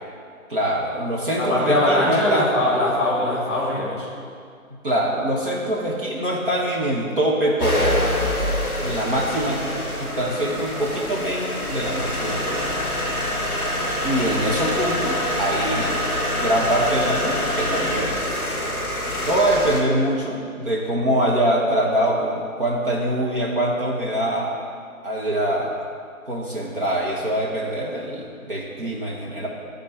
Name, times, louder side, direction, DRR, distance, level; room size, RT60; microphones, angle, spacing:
voice 1, 0.5-2.5 4.8-7.9 8.8-12.7 14.0-16.0 16.3-18.2 19.3-24.5 25.0-25.7 26.2-29.5, right 1 dB, 40° right, -3 dB, 1.3 m, -24 dB
voice 2, 1.4-4.1, left 1 dB, 10° left, -4 dB, 1.9 m, -21 dB
sound 1, 7.6-19.8, left 1 dB, 5° right, 0.9 m, -25 dB
11.5 x 4.3 x 8.1 m, 2.3 s
figure-of-eight pair, 165°, 43 cm